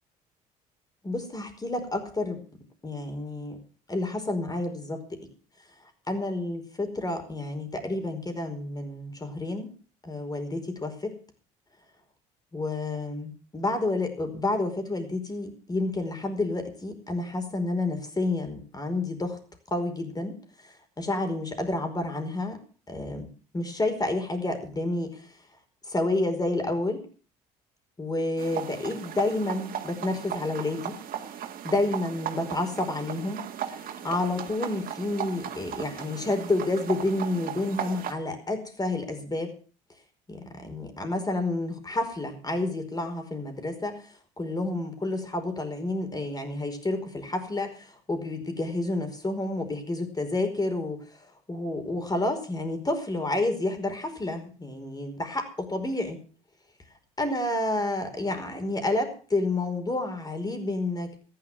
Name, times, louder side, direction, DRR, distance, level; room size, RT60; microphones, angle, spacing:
voice 1, 1.0-2.4 2.8-3.6 3.9-5.2 6.1-9.7 10.0-11.2 12.5-19.4 19.7-20.4 20.6-22.6 22.9-25.3 25.9-27.0 28.0-31.0 31.6-33.5 33.7-39.5 40.3-44.0 44.4-51.0 51.5-56.2 57.2-61.2, left 2 dB, 25° left, 7 dB, 4.8 m, -30 dB
sound 1, 28.4-38.1, right 9 dB, 60° right, 2.2 m, -37 dB
14.5 x 11.5 x 6.2 m, 0.39 s
hypercardioid pair, 65°, 17 cm